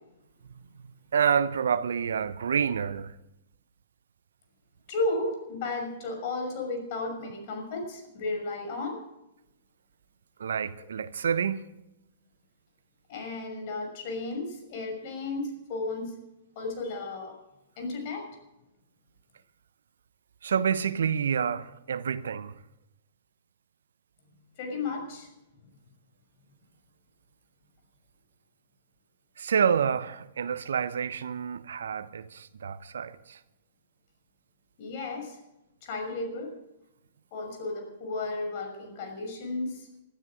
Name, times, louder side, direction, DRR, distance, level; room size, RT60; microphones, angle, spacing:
voice 1, 1.1-3.1 10.4-11.7 20.4-22.5 29.4-33.4, right 7 dB, 75° right, 0.8 m, -28 dB
voice 2, 4.9-9.0 13.1-16.1 16.6-17.3 17.8-18.3 24.6-25.3 34.8-35.4 35.8-36.5 37.3-39.9, left 2 dB, 50° left, 6.1 m, -33 dB
20.5 x 12.5 x 5.1 m
hypercardioid pair, 110°, 0 cm